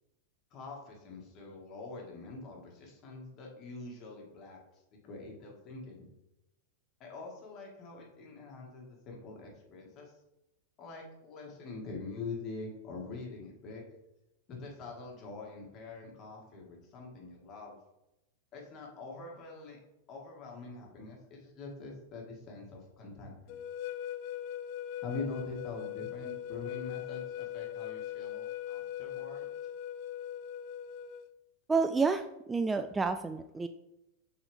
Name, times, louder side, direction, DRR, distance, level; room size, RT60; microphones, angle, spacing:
voice 1, 0.5-4.6 5.0-6.1 7.0-10.1 10.8-13.8 14.5-17.8 18.5-19.8 20.1-23.6 25.0-29.5, left 3 dB, 40° left, -1 dB, 2.2 m, -44 dB
sound 1, 23.5-31.3, left 10 dB, 55° left, 0.4 m, -40 dB
voice 2, 31.7-33.7, right 4 dB, 15° right, 9 dB, 0.3 m, -29 dB
6.8 x 4.3 x 3.6 m, 0.91 s
hypercardioid pair, 110°, 0 cm